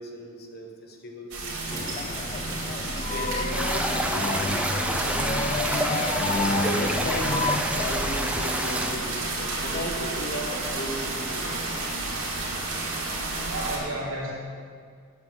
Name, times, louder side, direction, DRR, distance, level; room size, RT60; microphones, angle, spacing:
voice 1, 0.0-1.9 2.8-5.3 6.4-7.2 7.7-12.0, left 1 dB, 50° left, 2 dB, 1.6 m, -36 dB
sound 1, 1.3-13.8, right 2 dB, 70° right, 2.9 m, -31 dB
sound 2, 1.7-7.6, left 3 dB, 35° left, 0.5 m, -30 dB
sound 3, 3.5-8.9, right 1 dB, 5° right, 0.9 m, -28 dB
voice 2, 13.4-14.3, right 1 dB, 90° right, -4 dB, 3.0 m, -33 dB
8.5 x 8.1 x 8.2 m, 2.1 s
head